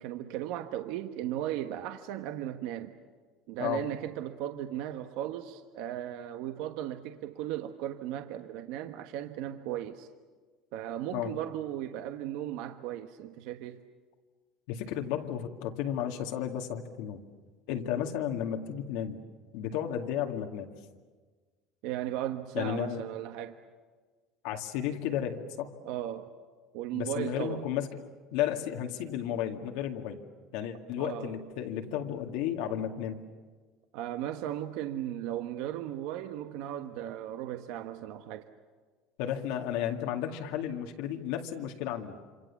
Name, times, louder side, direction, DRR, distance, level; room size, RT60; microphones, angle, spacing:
voice 1, 0.0-2.9 3.5-10.1 10.7-13.8 21.8-23.6 25.8-26.3 26.7-27.6 31.0-31.3 33.9-38.5, right 12 dB, 65° right, 1.3 m, -36 dB
voice 2, 14.7-17.2 17.7-19.2 19.5-20.7 22.5-23.0 24.4-25.8 26.9-27.9 28.3-30.2 30.5-33.2 39.2-42.1, left 10 dB, 75° left, 2.2 m, -33 dB
27.0 x 27.0 x 7.2 m
cardioid pair, 175°, 0 cm